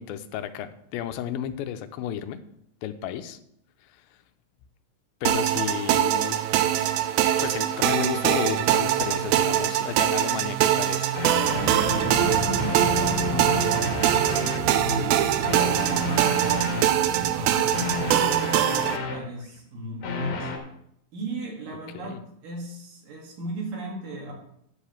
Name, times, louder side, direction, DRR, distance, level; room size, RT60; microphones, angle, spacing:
voice 1, 0.0-2.4 2.8-3.4 5.2-6.4 7.4-11.1 21.9-22.2, left 10 dB, 85° left, 10 dB, 2.4 m, -32 dB
sound 1, 5.3-19.0, right 12 dB, 90° right, 2.5 m, -23 dB
sound 2, 11.1-14.7 15.4-17.0 17.7-19.4 20.0-20.6, left 4 dB, 60° left, 2.5 m, -31 dB
sound 3, 11.5-18.0, right 2 dB, 45° right, 2.5 m, -33 dB
voice 2, 12.2-16.4 16.9-18.0 18.6-20.5 21.1-22.2 22.4-24.3, right 1 dB, 70° right, 0 dB, 3.7 m, -36 dB
10.5 x 4.9 x 7.1 m, 0.74 s
omnidirectional pair, 4.1 m